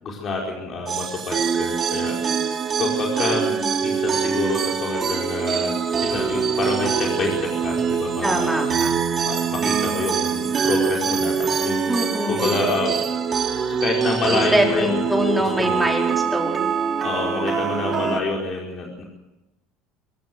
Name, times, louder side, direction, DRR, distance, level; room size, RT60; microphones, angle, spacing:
voice 1, 0.0-2.1 2.8-3.5 3.8-5.7 6.0-8.5 9.2-11.9 12.3-13.0 13.7-15.2 15.6-15.8 17.0-19.0, left 3 dB, 40° left, -1 dB, 5.0 m, -27 dB
sound 1, 0.9-18.2, right 6 dB, 35° right, 3.0 m, -24 dB
voice 2, 3.4-3.7 8.2-9.0 11.9-12.7 14.3-16.7, equal, 5° right, 0 dB, 4.9 m, -24 dB
23.5 x 17.0 x 7.9 m, 1.0 s
supercardioid pair, 115°, 0 cm